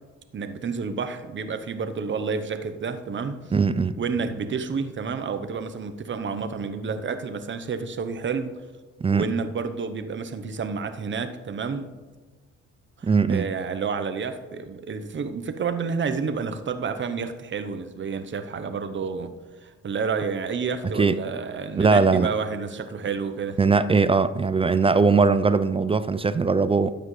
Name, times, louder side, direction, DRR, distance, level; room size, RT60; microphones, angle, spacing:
voice 1, 0.3-3.4 4.0-8.6 9.1-11.9 13.0-19.3 19.6-23.6, right 5 dB, 40° right, 0.9 m, -30 dB
voice 2, 3.5-4.0 9.0-9.3 13.0-13.5 20.9-21.2 21.8-22.3 23.6-27.0, right 4 dB, 20° right, 0.3 m, -20 dB
13.0 x 8.9 x 3.2 m
cardioid pair, 90°, 30 cm